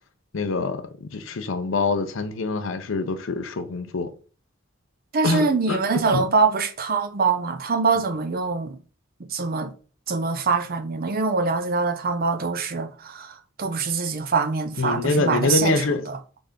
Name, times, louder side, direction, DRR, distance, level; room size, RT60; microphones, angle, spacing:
voice 1, 0.3-4.1 5.2-6.2 14.8-16.0, left 3 dB, 70° left, 0.6 m, -25 dB
voice 2, 5.1-8.8 9.3-9.7 10.1-16.2, right 4 dB, 50° right, 0.6 m, -24 dB
3.9 x 3.4 x 3.7 m
head